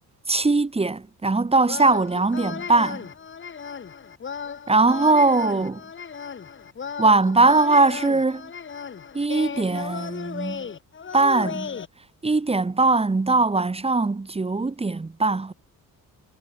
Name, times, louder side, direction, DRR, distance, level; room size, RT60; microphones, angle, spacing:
voice 1, 0.3-3.1 4.7-5.8 7.0-8.5 9.1-10.7 11.1-11.8 12.2-15.5, right 3 dB, 15° right, 2.5 m, -21 dB
sound 1, 1.6-11.9, left 6 dB, 30° left, 2.5 m, -35 dB
wide cardioid pair, 175°, 37 cm